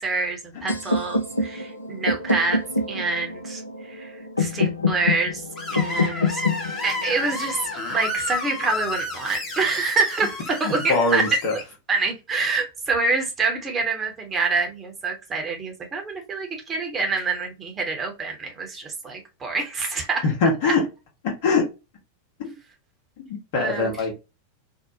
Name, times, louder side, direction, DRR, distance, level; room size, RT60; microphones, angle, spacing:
voice 1, 0.0-3.6 3.9-5.4 5.7-6.4 6.8-11.4 11.9-20.3 20.6-20.7 23.5-24.1, right 4 dB, 20° right, 0.8 m, -26 dB
sound 1, 0.7-8.6, left 3 dB, 80° left, 0.5 m, -27 dB
Screech, 5.6-11.6, left 2 dB, 25° left, 1.0 m, -31 dB
voice 2, 10.6-11.6 20.2-20.8 21.2-21.6 22.4-22.5 23.2-24.1, left 3 dB, 50° left, 1.1 m, -23 dB
2.7 x 2.1 x 2.7 m
figure-of-eight pair, 90°, 0 cm